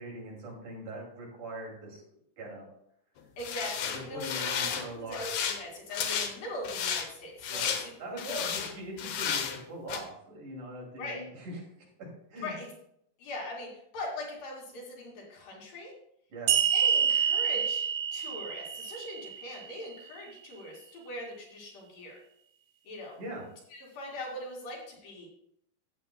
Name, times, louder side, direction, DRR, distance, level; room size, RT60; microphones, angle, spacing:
voice 1, 0.0-2.0 2.4-2.6 3.9-5.3 7.5-7.7 8.0-11.6 12.3-12.5 16.3-16.6 23.2-23.4, right 1 dB, 60° right, -2 dB, 4.1 m, -41 dB
voice 2, 3.4-8.6 11.0-11.2 12.4-12.7 13.2-15.9 16.7-17.9 18.1-22.1 22.8-23.2 23.7-25.3, left 1 dB, 85° left, -2 dB, 4.4 m, -41 dB
sound 1, 3.4-4.9 5.1-5.6 5.9-6.3 6.6-7.1 7.4-7.9 8.2-8.7 9.0-9.6 9.9-10.0, left 7 dB, 70° left, 1.7 m, -32 dB
sound 2, 16.5-19.8, right 8 dB, 75° right, 2.7 m, -28 dB
13.5 x 8.7 x 2.3 m, 0.71 s
omnidirectional pair, 3.9 m